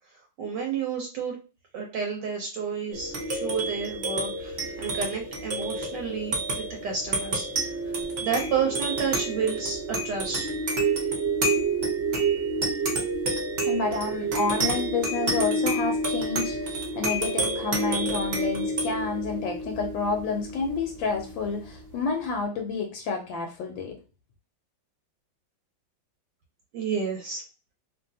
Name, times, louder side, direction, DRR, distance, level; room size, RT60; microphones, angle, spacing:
voice 1, 0.4-1.3 1.7-7.7 8.2-10.5 26.7-27.4, right 6 dB, 75° right, 1 dB, 1.2 m, -30 dB
sound 1, 2.9-21.8, right 2 dB, 50° right, 0.7 m, -29 dB
voice 2, 13.6-23.9, left 4 dB, 80° left, 3 dB, 1.3 m, -29 dB
3.0 x 2.6 x 2.6 m, 0.33 s
omnidirectional pair, 2.1 m